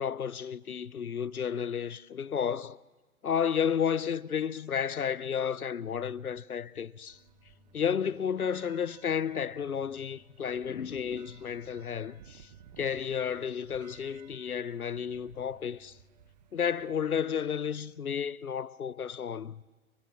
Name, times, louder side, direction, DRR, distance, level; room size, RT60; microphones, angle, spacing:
voice 1, 0.0-2.8 3.2-7.2 7.7-12.5 12.8-16.0 16.5-19.6, left 7 dB, 80° left, 0.8 m, -32 dB
sound 1, 6.3-17.0, left 2 dB, 5° left, 0.6 m, -66 dB
sound 2, 7.1-17.0, right 10 dB, 30° right, 0.9 m, -58 dB
29.5 x 17.0 x 6.3 m
figure-of-eight pair, 135°, 43 cm